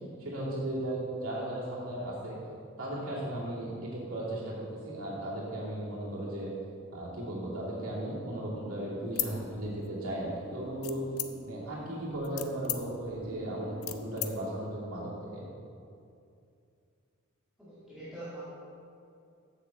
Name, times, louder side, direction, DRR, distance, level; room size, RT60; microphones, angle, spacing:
voice 1, 0.2-2.4 2.8-6.5 6.9-11.0 11.4-15.4, right 1 dB, 75° right, -7 dB, 2.6 m, -36 dB
sound 1, 8.3-14.5, left 1 dB, 50° right, 1.4 m, -48 dB
sound 2, 9.1-10.1 10.8-11.6 12.1-14.3, left 13 dB, 75° left, 0.6 m, -37 dB
voice 2, 17.6-18.5, right 1 dB, ahead, -13 dB, 2.1 m, -43 dB
7.3 x 7.1 x 7.1 m, 2.5 s
head